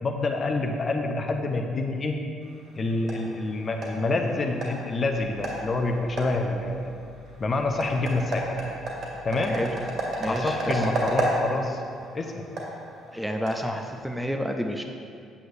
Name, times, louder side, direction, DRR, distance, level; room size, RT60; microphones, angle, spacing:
voice 1, 0.0-2.2 2.8-6.9 7.4-8.5 9.2-9.6 10.3-11.8 12.1-12.3, left 2 dB, 35° left, 3 dB, 0.7 m, -27 dB
sound 1, 2.4-14.2, right 1 dB, 50° right, 1.9 m, -33 dB
sound 2, 5.0-10.7, left 6 dB, 90° left, 0.4 m, -51 dB
voice 2, 9.4-9.8 10.2-10.8 13.1-14.8, equal, ahead, 3 dB, 0.6 m, -30 dB
8.4 x 7.7 x 2.6 m, 2.3 s
figure-of-eight pair, 45°, 0 cm